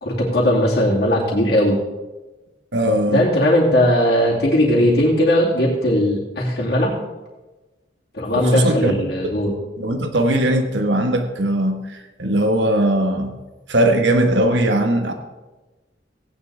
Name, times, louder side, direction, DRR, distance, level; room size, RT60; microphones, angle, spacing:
voice 1, 0.0-1.8 3.1-7.0 8.1-9.5, equal, 60° left, -5 dB, 2.5 m, -18 dB
voice 2, 2.7-3.2 8.3-9.3 9.8-13.4 13.7-15.1, right 1 dB, 85° right, 5 dB, 1.3 m, -19 dB
17.0 x 9.6 x 3.4 m, 1.1 s
head